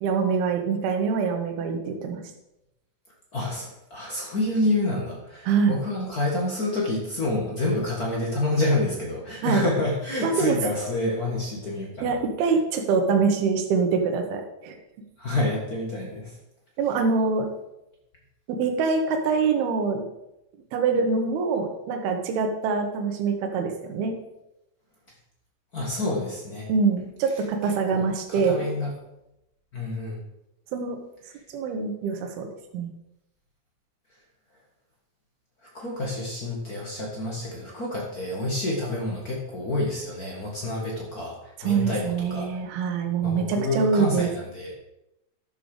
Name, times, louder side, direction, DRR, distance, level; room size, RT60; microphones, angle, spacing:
voice 1, 0.0-2.2 5.4-5.8 9.4-9.6 10.2-10.6 12.0-14.8 16.8-17.5 18.5-20.0 20.7-24.2 26.7-28.6 30.7-31.0 31.5-32.5 32.7-32.9 41.6-44.3, right 5 dB, 75° right, 4 dB, 3.1 m, -24 dB
voice 2, 3.3-12.1 15.2-16.3 25.7-26.7 27.9-28.9 29.7-30.2 35.7-41.4 41.6-42.5 43.2-44.8, left 2 dB, 60° left, -2 dB, 0.9 m, -28 dB
12.0 x 6.9 x 5.0 m, 0.90 s
omnidirectional pair, 4.7 m